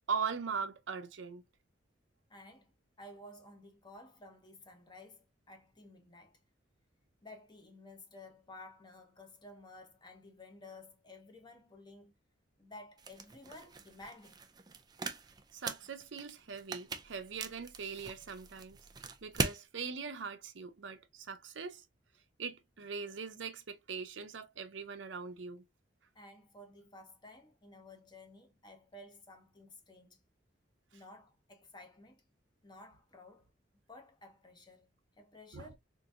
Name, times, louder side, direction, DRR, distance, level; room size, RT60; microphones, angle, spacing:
voice 1, 0.0-1.4 15.5-18.8 19.2-21.8 22.4-25.6 35.5-35.7, right 5 dB, 75° right, 0.6 m, -41 dB
voice 2, 2.3-6.4 7.2-12.1 12.6-14.4 26.1-30.2 30.9-32.2 32.6-33.5 33.9-34.9 35.2-35.8, left 2 dB, 25° left, 0.7 m, -54 dB
sound 1, 13.0-19.6, right 4 dB, 20° right, 0.4 m, -41 dB
3.8 x 2.6 x 2.3 m
head